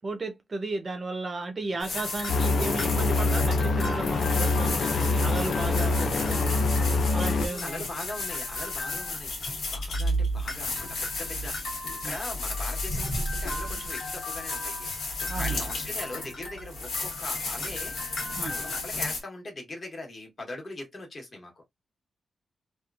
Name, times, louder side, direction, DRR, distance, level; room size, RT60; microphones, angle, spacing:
voice 1, 0.0-6.6 7.1-7.9 12.0-12.2 15.3-15.6 18.4-18.6, right 3 dB, 30° right, 0.5 m, -34 dB
voice 2, 1.6-2.0 7.3-18.0 18.4-21.6, left 2 dB, 35° left, 1.1 m, -41 dB
sound 1, 1.8-19.2, left 2 dB, 80° left, 1.4 m, -32 dB
sound 2, 2.3-7.5, left 3 dB, 60° left, 0.4 m, -25 dB
2.9 x 2.3 x 2.3 m
wide cardioid pair, 155°, 0 cm